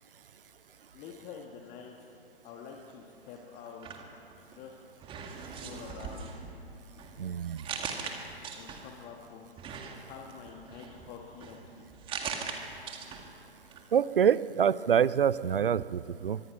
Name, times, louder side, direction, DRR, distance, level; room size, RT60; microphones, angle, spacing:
voice 1, 0.9-1.9 2.4-3.9 4.5-4.8 5.4-6.4 8.5-9.5 9.9-11.8, left 7 dB, 25° left, 1 dB, 1.6 m, -47 dB
sound 1, 3.7-4.6 5.0-9.1 9.6-13.4 13.7-13.8, right 6 dB, 15° right, 2.0 m, -41 dB
voice 2, 7.2-7.7 13.9-16.4, right 8 dB, 60° right, 19 dB, 0.7 m, -26 dB
25.0 x 23.5 x 6.0 m, 2.7 s
figure-of-eight pair, 120°, 31 cm